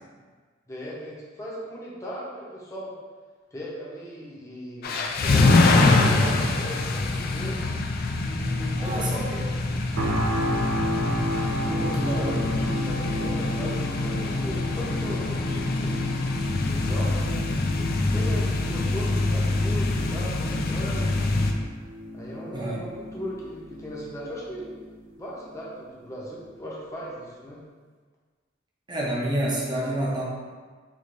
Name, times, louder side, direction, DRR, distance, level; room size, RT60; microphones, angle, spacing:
voice 1, 0.7-2.9 3.5-7.6 8.2-9.4 11.8-16.0 16.6-21.4 22.1-24.7 25.2-27.6, equal, 15° left, -6 dB, 0.7 m, -38 dB
sound 1, 4.8-21.5, left 2 dB, 50° left, 0.3 m, -25 dB
voice 2, 8.8-9.4 11.7-12.5 22.5-22.8 28.9-30.2, right 1 dB, 25° right, -4 dB, 0.6 m, -28 dB
sound 2, 10.0-25.0 25.5-25.6, equal, 70° right, 0.5 m, -33 dB
4.5 x 2.5 x 2.5 m, 1.5 s
head